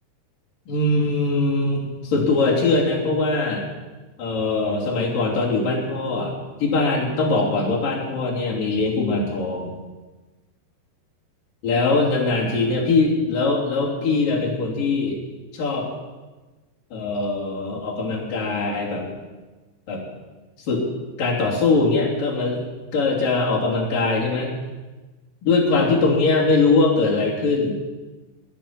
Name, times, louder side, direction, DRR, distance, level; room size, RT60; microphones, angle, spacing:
voice 1, 0.7-3.7 4.2-9.7 11.6-15.2 15.5-15.9 16.9-19.2 19.9-20.0 20.7-20.8 21.2-22.6 22.9-24.5 25.4-27.8, left 3 dB, 55° left, -3 dB, 4.8 m, -21 dB
18.5 x 7.7 x 9.8 m, 1.2 s
omnidirectional pair, 4.8 m